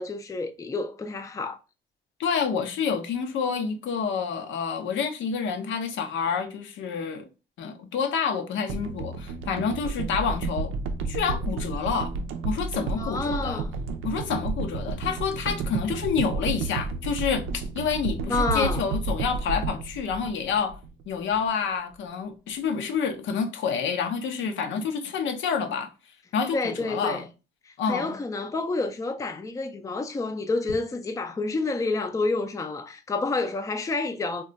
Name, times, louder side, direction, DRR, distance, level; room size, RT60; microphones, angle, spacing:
voice 1, 0.0-1.6 13.0-13.7 18.3-18.8 26.5-27.3 27.7-34.4, left 3 dB, 15° left, 0.4 m, -29 dB
voice 2, 2.2-7.3 7.6-10.7 11.1-12.2 12.4-13.6 14.0-20.8 21.1-25.9 26.3-27.3 27.8-28.2, left 6 dB, 70° left, 0.6 m, -28 dB
sound 1, 8.7-21.0 21.3-21.5, right 4 dB, 90° right, 0.5 m, -31 dB
2.3 x 2.2 x 3.8 m
cardioid pair, 90°, 20 cm